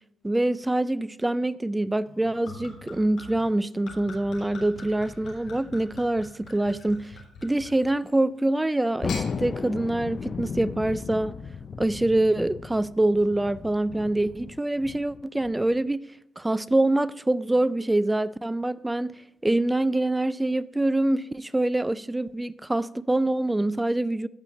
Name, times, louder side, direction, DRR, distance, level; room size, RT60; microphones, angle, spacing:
voice 1, 0.2-11.4 11.8-16.0 16.4-19.1 19.4-24.3, right 1 dB, 10° right, 0.3 m, -25 dB
Gurgling / Chink clink / Liquid, 2.1-8.2 8.9-9.3, left 3 dB, 70° left, 3.6 m, -44 dB
Thunder, 9.0-15.9, left 5 dB, 45° left, 0.6 m, -35 dB
16.0 x 5.6 x 3.1 m
cardioid pair, 90°, 0 cm